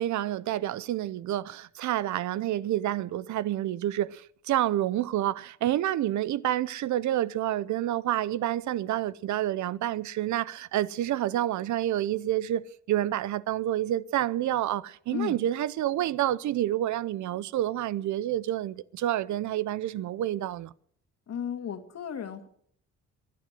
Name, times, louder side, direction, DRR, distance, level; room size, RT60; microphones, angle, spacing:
voice 1, 0.0-20.7, right 13 dB, 70° right, 0.7 m, -28 dB
voice 2, 15.1-15.4 21.3-22.5, left 8 dB, 55° left, 2.2 m, -34 dB
22.5 x 8.5 x 7.5 m
cardioid pair, 90°, 30 cm